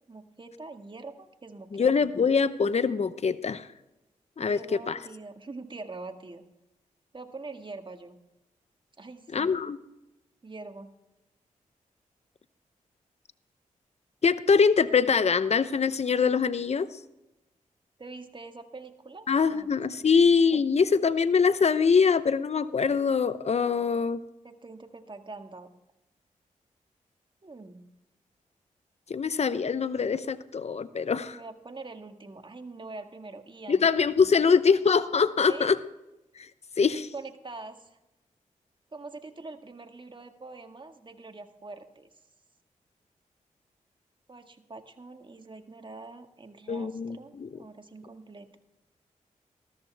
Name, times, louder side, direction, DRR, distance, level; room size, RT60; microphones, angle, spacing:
voice 1, 0.1-1.9 4.5-6.4 7.1-8.2 9.0-9.6 10.4-10.9 18.0-19.7 20.0-20.1 24.4-25.7 27.4-27.9 31.3-33.9 35.5-35.7 37.1-38.0 38.9-42.1 44.3-48.6, right 3 dB, 35° right, 6 dB, 1.7 m, -44 dB
voice 2, 1.7-3.7 4.4-5.0 9.3-9.8 14.2-16.9 19.3-24.2 29.1-31.4 33.7-35.8 36.8-37.1 46.7-47.5, left 5 dB, 50° left, 14 dB, 0.8 m, -23 dB
14.0 x 13.5 x 3.4 m, 0.94 s
cardioid pair, 50°, 14 cm